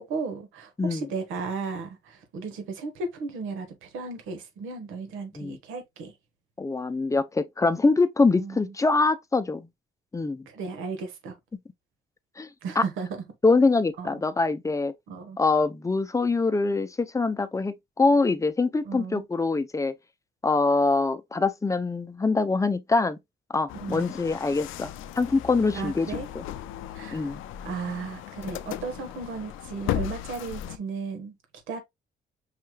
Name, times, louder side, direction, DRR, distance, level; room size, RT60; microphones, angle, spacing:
voice 1, 0.0-6.1 8.3-8.6 10.5-11.3 12.6-13.2 14.0-14.1 15.1-15.4 18.8-19.2 23.7-24.1 25.7-26.3 26.9-27.3 27.6-31.3 31.7-31.8, right 4 dB, 85° right, 1.3 m, -35 dB
voice 2, 6.6-9.7 10.1-10.5 12.4-12.5 12.8-12.9 13.4-14.9 15.4-19.9 20.4-23.2 23.5-24.9 25.2-26.4 27.1-27.4, left 3 dB, 15° left, 0.5 m, -24 dB
sound 1, 23.7-30.8, left 12 dB, 85° left, 0.4 m, -36 dB
5.6 x 3.1 x 2.3 m
cardioid pair, 90°, 20 cm